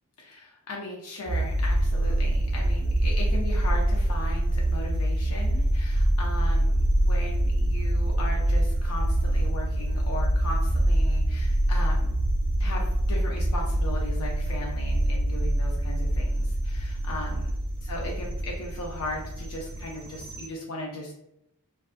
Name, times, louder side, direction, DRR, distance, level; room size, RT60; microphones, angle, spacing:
voice 1, 0.2-12.1 12.6-17.5 17.8-21.1, left 1 dB, 90° left, -1 dB, 0.5 m, -37 dB
sound 1, 1.2-20.5, right 1 dB, 45° right, 0.4 m, -25 dB
2.4 x 2.3 x 2.4 m, 0.79 s
head